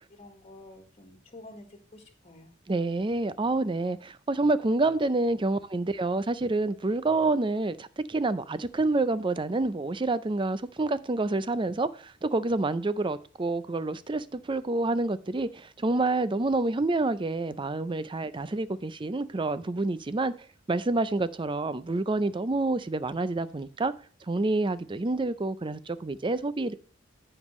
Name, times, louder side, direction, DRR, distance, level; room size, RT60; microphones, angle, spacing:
voice 1, 0.1-2.5, left 2 dB, 30° left, 1.6 m, -49 dB
voice 2, 2.7-20.3 20.7-23.9 24.3-26.7, right 2 dB, 25° right, 0.5 m, -28 dB
14.5 x 5.4 x 3.2 m
head